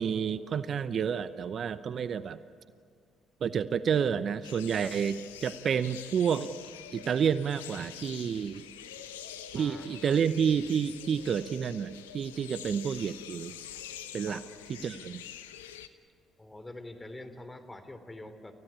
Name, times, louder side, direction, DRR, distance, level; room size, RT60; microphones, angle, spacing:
voice 1, 0.0-2.4 3.4-6.5 6.9-8.6 9.5-13.5 14.1-14.4 14.8-15.2, right 7 dB, 55° right, 14 dB, 0.7 m, -29 dB
sound 1, 4.4-15.9, left 10 dB, 90° left, 0.8 m, -46 dB
voice 2, 9.5-10.2 14.3-14.4 16.4-18.5, left 2 dB, 15° left, 8 dB, 3.1 m, -45 dB
29.5 x 15.5 x 10.0 m, 2.2 s
hypercardioid pair, 55°, 0 cm